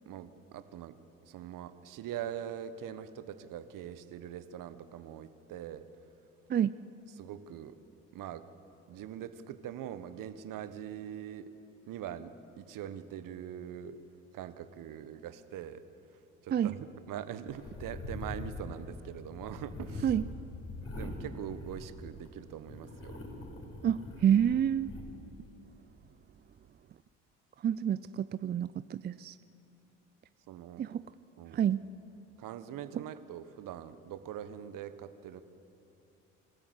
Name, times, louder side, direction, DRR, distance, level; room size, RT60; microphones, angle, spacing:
voice 1, 0.1-5.9 7.2-7.8 8.1-8.4 8.9-11.5 11.9-14.0 14.3-15.8 16.4-20.1 20.8-23.2 30.5-30.8 31.4-31.7 32.4-35.4, right 10 dB, 55° right, 12 dB, 1.3 m, -43 dB
sound 1, 17.5-22.3 22.6-25.0, left 2 dB, 35° left, 4.9 m, -43 dB
voice 2, 23.8-24.9 27.6-29.4 30.8-31.0 31.5-31.8, right 9 dB, 25° right, 15 dB, 0.4 m, -28 dB
26.5 x 14.0 x 8.1 m, 2.8 s
hypercardioid pair, 65°, 38 cm